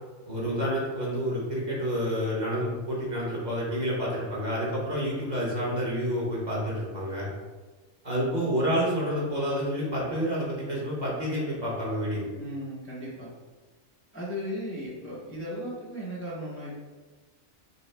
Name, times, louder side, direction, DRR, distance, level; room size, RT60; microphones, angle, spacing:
voice 1, 0.2-7.3 8.0-12.3, equal, 40° right, -5 dB, 0.9 m, -29 dB
voice 2, 12.4-13.3 14.1-16.7, equal, 15° left, -7 dB, 0.5 m, -36 dB
5.3 x 2.1 x 3.2 m, 1.3 s
omnidirectional pair, 1.4 m